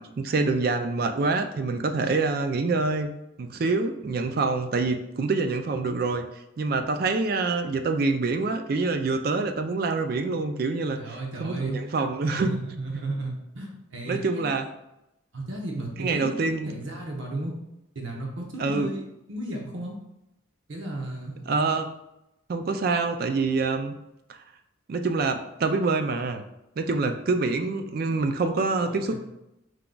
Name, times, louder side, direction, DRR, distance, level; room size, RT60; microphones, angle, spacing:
voice 1, 0.0-3.1 3.4-6.3 6.6-11.0 11.4-12.6 14.1-14.7 16.0-16.7 18.6-18.9 21.5-21.9 22.5-23.9 24.9-26.4 26.8-29.1, right 3 dB, 50° right, 7 dB, 0.4 m, -26 dB
voice 2, 11.0-11.8 12.3-14.5 15.3-16.4 16.7-17.5 17.9-19.0 19.3-20.0 20.7-21.4 28.9-29.2, right 2 dB, 75° right, 0 dB, 0.9 m, -34 dB
4.7 x 3.8 x 2.3 m, 0.87 s
head